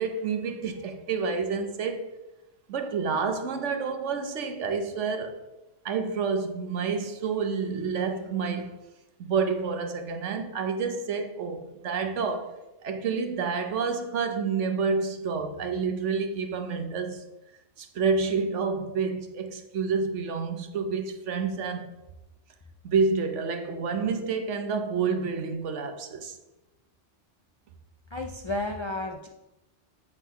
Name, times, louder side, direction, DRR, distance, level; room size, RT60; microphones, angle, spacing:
voice 1, 0.0-2.1 2.7-5.4 5.8-8.8 9.2-12.5 12.8-17.2 17.8-21.9 22.8-26.3, right 5 dB, 75° right, 1.2 m, -29 dB
voice 2, 28.1-29.3, left 2 dB, 50° left, 0.3 m, -32 dB
8.2 x 3.7 x 5.6 m
omnidirectional pair, 1.2 m